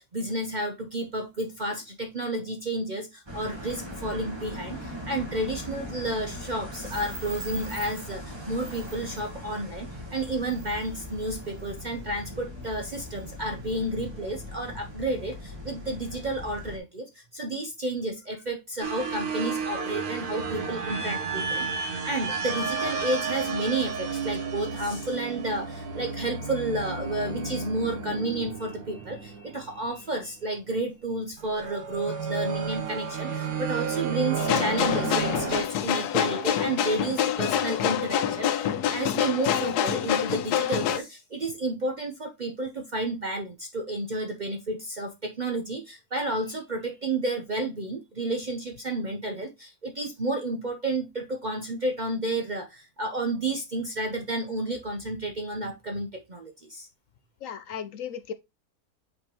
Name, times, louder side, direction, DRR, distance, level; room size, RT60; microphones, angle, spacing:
voice 1, 0.0-56.9, right 2 dB, 40° right, 0.6 m, -31 dB
sound 1, 3.3-16.8, left 1 dB, 15° right, 1.7 m, -39 dB
sound 2, 18.8-30.1 31.4-35.6, right 5 dB, 70° right, 1.5 m, -32 dB
sound 3, 34.4-41.0, left 10 dB, 90° left, 1.2 m, -26 dB
voice 2, 57.4-58.3, left 8 dB, 70° left, 0.9 m, -36 dB
8.4 x 4.3 x 2.9 m
omnidirectional pair, 1.6 m